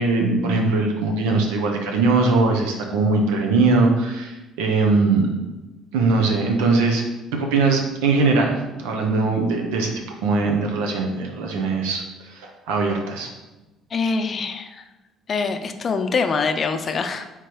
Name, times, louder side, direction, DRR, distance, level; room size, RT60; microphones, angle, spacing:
voice 1, 0.0-5.3 5.9-7.0 7.3-9.9 10.2-12.0 12.3-13.3, right 3 dB, 85° right, 2 dB, 0.7 m, -20 dB
voice 2, 13.9-14.8 15.3-17.3, left 4 dB, 45° left, 7 dB, 0.5 m, -24 dB
3.8 x 3.0 x 4.7 m, 1.1 s
hypercardioid pair, 65°, 0 cm